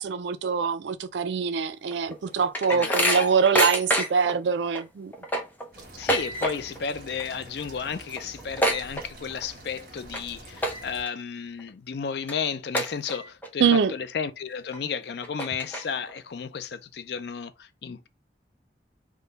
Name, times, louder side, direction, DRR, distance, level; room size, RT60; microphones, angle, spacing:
voice 1, 0.0-5.1 13.6-13.9, right 6 dB, 80° right, 0.4 m, -24 dB
sound 1, 1.9-4.3 4.7-4.8 5.1-6.8 7.1-7.5 7.8-7.9 8.1-9.5 10.0-10.2 10.6-11.1 11.6-11.7 12.3-12.4 12.7-13.5 13.9-14.0 14.7-14.8 15.2-16.1, equal, 10° left, 0.6 m, -27 dB
voice 2, 2.7-3.1 6.0-18.1, left 6 dB, 65° left, 0.4 m, -33 dB
sound 2, 5.7-11.0, right 1 dB, 50° right, 1.3 m, -46 dB
3.6 x 2.2 x 3.8 m
head